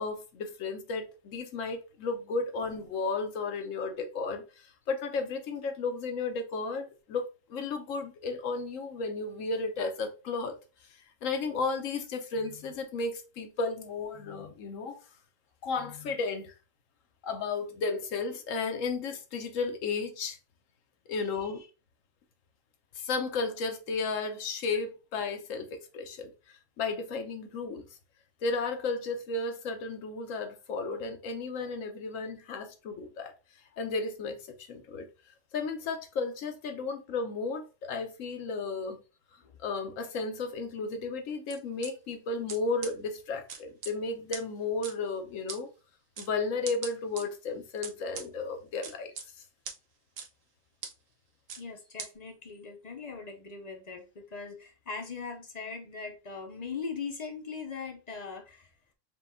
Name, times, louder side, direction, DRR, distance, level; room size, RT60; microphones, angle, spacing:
voice 1, 0.0-10.6 10.9-15.0 15.6-16.5 17.2-20.4 21.1-21.6 22.9-27.8 28.4-33.3 33.8-35.1 35.5-39.0 39.6-45.7 46.2-49.1, left 4 dB, 80° left, 1.1 m, -34 dB
voice 2, 21.2-21.7 32.2-32.3 39.4-39.5 51.6-58.7, left 5 dB, 45° left, 0.5 m, -40 dB
sound 1, 41.5-41.9 42.5-42.6 42.8-42.9 43.5-43.9 44.3-44.4 44.8-44.9 45.5-45.6 46.2-46.3 46.6-47.2 47.8-48.3 48.8-49.2 49.6-49.8 50.2-50.3 50.8-50.9 51.5-51.6 52.0-52.1, right 6 dB, 85° right, 1.2 m, -39 dB
4.9 x 2.3 x 3.5 m
omnidirectional pair, 1.4 m